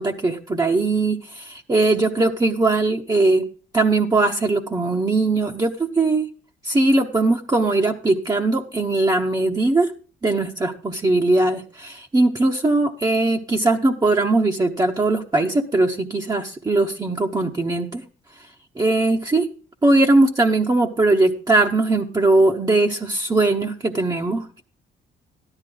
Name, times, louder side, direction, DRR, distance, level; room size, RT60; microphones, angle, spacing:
voice 1, 0.0-3.4 3.7-6.3 6.6-9.9 10.2-18.0 18.4-18.5 18.8-19.5 19.8-24.6, right 2 dB, 20° right, 1 dB, 0.9 m, -20 dB
13.0 x 11.0 x 3.9 m, 0.37 s
cardioid pair, 90°, 20 cm